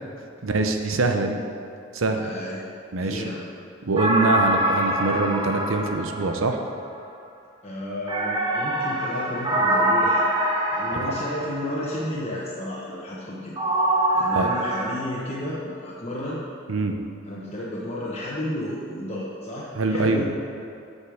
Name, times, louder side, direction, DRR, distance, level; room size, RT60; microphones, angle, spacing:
voice 1, 0.4-1.4 1.9-2.2 2.9-3.2 3.8-6.6 10.9-11.1 14.3-14.5 16.7-17.0 19.8-20.2, right 3 dB, 80° right, 5 dB, 0.8 m, -24 dB
voice 2, 2.1-2.6 3.0-3.5 7.6-10.2 10.7-13.5 13.9-16.4 17.2-20.3, left 1 dB, 30° left, -6 dB, 1.1 m, -32 dB
sound 1, 4.0-6.8 8.1-11.9 13.6-14.9, right 1 dB, 25° right, 0.8 m, -24 dB
8.1 x 5.5 x 6.4 m, 2.5 s
head